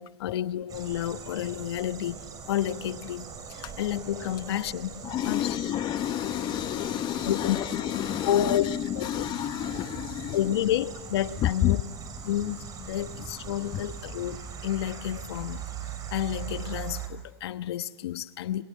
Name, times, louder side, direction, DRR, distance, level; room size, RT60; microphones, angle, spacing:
voice 1, 0.0-2.2 2.5-5.5 7.2-7.6 8.3-8.6 9.0-9.1 10.3-11.8 12.2-15.6 16.1-18.6, left 11 dB, 70° left, 1.1 m, -30 dB
sound 1, 0.7-17.1, right 6 dB, 25° right, 5.6 m, -41 dB
voice 2, 5.0-10.4 11.4-11.8 13.6-13.8, left 13 dB, 35° left, 1.0 m, -29 dB
28.0 x 27.0 x 7.3 m
hypercardioid pair, 120°, 14 cm